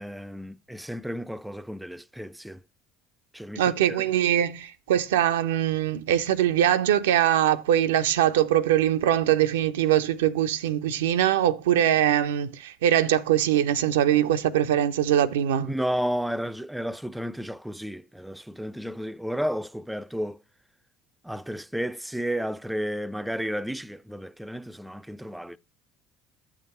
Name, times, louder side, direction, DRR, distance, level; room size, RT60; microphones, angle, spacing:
voice 1, 0.0-2.6 3.3-3.6 3.9-4.0 15.6-20.4 21.2-25.6, equal, 5° right, 0.4 m, -32 dB
voice 2, 3.6-15.7, right 11 dB, 75° right, 0.4 m, -22 dB
8.4 x 5.9 x 4.2 m
figure-of-eight pair, 60°, 0 cm